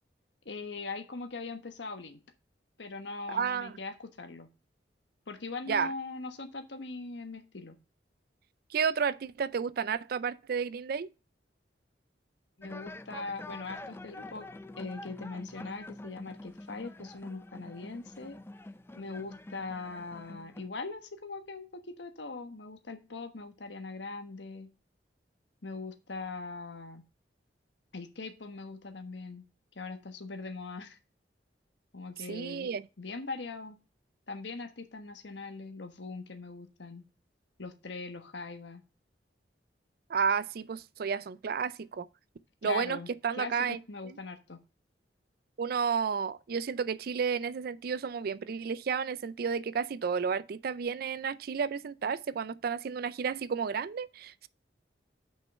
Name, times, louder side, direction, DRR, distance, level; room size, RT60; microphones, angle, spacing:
voice 1, 0.4-2.2 2.8-4.5 5.3-7.7 12.6-14.5 14.8-18.4 18.9-24.7 25.6-27.0 27.9-29.4 29.7-31.0 31.9-32.7 33.0-33.8 34.3-37.0 37.6-38.8 42.6-43.1 43.4-43.5 43.9-44.6, left 3 dB, 90° left, 1.3 m, -41 dB
voice 2, 3.3-3.7 5.7-5.9 8.7-11.1 32.3-32.8 40.1-42.1 42.6-43.8 44.0-44.2 45.6-54.5, right 6 dB, 60° right, 0.4 m, -32 dB
sound 1, 12.6-20.7, left 2 dB, 15° left, 0.4 m, -46 dB
6.1 x 5.5 x 5.4 m
head